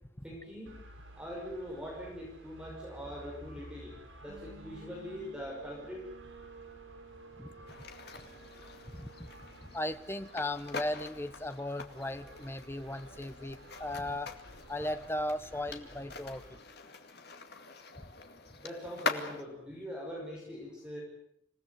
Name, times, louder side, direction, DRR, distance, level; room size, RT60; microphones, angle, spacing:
voice 1, 0.2-0.8 1.1-6.0 18.6-21.0, equal, 5° right, -2 dB, 5.6 m, -42 dB
sound 1, 0.7-16.6, right 1 dB, 90° right, 6.8 m, -54 dB
sound 2, 4.3-10.1, right 4 dB, 70° right, 2.9 m, -54 dB
sound 3, 7.7-19.4, left 4 dB, 55° left, 2.2 m, -44 dB
voice 2, 8.9-9.3 9.6-14.3 14.7-16.4, left 1 dB, 10° left, 11 dB, 1.0 m, -37 dB
27.0 x 17.0 x 9.3 m, 0.75 s
head